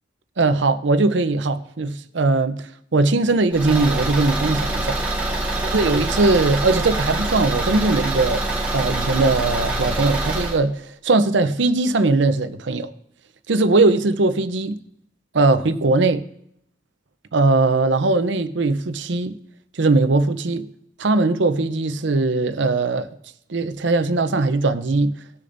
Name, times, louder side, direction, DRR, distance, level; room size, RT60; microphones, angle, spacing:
voice 1, 0.4-5.0 5.7-8.4 8.7-12.9 13.5-14.8 15.3-16.2 17.3-19.4 19.7-20.7 21.0-23.2 23.5-25.1, right 3 dB, 75° right, 0.7 m, -20 dB
Car / Engine, 3.5-10.6, right 2 dB, 10° right, 1.4 m, -25 dB
20.0 x 6.7 x 2.6 m
head